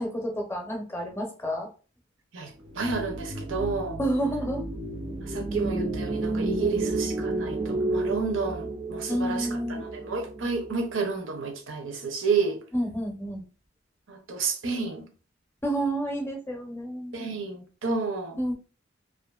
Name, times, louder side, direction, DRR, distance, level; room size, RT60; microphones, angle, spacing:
voice 1, 0.0-1.7 4.0-4.6 6.6-6.9 9.1-9.8 12.7-13.4 15.6-17.3 18.4-18.5, right 1 dB, 15° left, 0.6 m, -30 dB
voice 2, 2.3-4.0 5.2-12.6 14.1-15.1 17.1-18.4, right 4 dB, 85° right, 0.6 m, -30 dB
sound 1, 2.6-11.0, right 2 dB, 30° right, 0.3 m, -32 dB
2.5 x 2.5 x 2.3 m
head